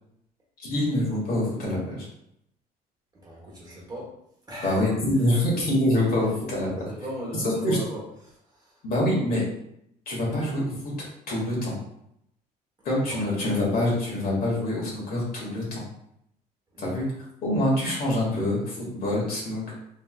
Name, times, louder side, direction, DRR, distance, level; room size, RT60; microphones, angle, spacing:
voice 1, 0.6-2.1 4.6-6.9 7.4-7.8 8.8-9.4 10.1-10.9 11.3-11.8 12.8-15.8 16.8-17.1 17.4-19.6, left 1 dB, 60° left, -4 dB, 1.3 m, -25 dB
voice 2, 3.1-4.1 4.5-4.9 5.2-5.4 6.6-8.8 13.1-13.2 16.7-17.0, equal, 25° right, -5 dB, 1.1 m, -38 dB
3.1 x 2.6 x 2.4 m, 0.78 s
cardioid pair, 110°, 17 cm